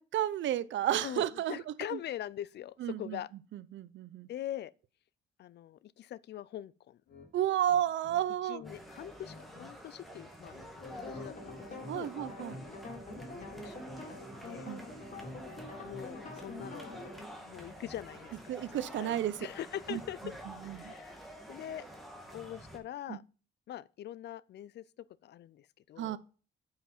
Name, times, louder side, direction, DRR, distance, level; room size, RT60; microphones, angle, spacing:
voice 1, 0.0-1.6 1.9-2.0 2.8-3.2 3.5-4.3 7.3-8.6 11.9-12.6 14.7-14.9 18.5-19.3 19.9-20.0 20.6-20.9 23.1-23.2 26.0-26.2, right 11 dB, 70° right, 0.7 m, -32 dB
voice 2, 1.0-3.3 4.3-4.7 5.4-7.0 8.4-10.5 10.9-12.1 13.3-14.7 15.8-16.9 17.4-18.6 19.0-19.2 19.4-20.2 20.6-21.2 21.5-21.8 22.3-23.2 23.7-24.8 25.2-26.1, left 11 dB, 60° left, 0.5 m, -43 dB
sound 1, 7.1-7.3 7.7-8.8 9.1-9.7 10.0-11.9, left 4 dB, 85° left, 2.9 m, -54 dB
sound 2, 8.6-22.8, equal, ahead, 2.0 m, -49 dB
sound 3, 10.8-17.3, left 2 dB, 40° left, 3.4 m, -45 dB
8.6 x 5.8 x 4.3 m
cardioid pair, 90°, 20 cm